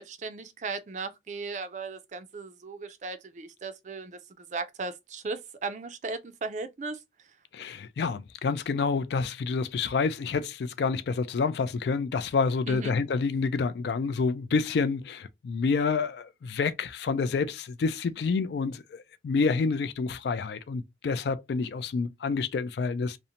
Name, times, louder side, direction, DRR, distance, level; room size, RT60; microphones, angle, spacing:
voice 1, 0.0-7.0 12.7-13.0, right 4 dB, 40° right, 0.4 m, -37 dB
voice 2, 7.5-23.2, left 4 dB, 70° left, 0.3 m, -28 dB
2.5 x 2.1 x 2.8 m
head